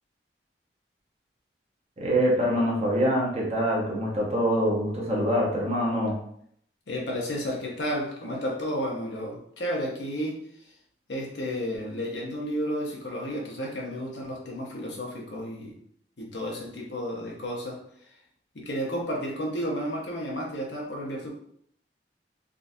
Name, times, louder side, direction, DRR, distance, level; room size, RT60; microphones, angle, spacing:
voice 1, 2.0-6.1, equal, 35° right, -3 dB, 0.9 m, -25 dB
voice 2, 6.9-10.7 11.1-15.7 16.2-17.8 18.5-21.3, equal, 80° left, -2 dB, 0.9 m, -32 dB
3.7 x 2.4 x 2.7 m, 0.67 s
head